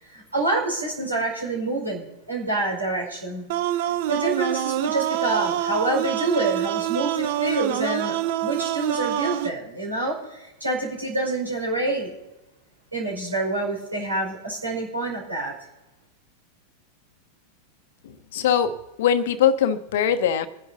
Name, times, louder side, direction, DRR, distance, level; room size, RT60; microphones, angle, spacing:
voice 1, 0.1-3.4 4.1-12.1 12.9-15.5, right 2 dB, 80° right, 5.1 m, -27 dB
sound 1, 3.5-9.5, right 12 dB, 50° right, 0.7 m, -26 dB
voice 2, 18.0-20.5, left 8 dB, 55° left, 1.1 m, -22 dB
26.5 x 11.0 x 2.8 m
figure-of-eight pair, 90°, 0 cm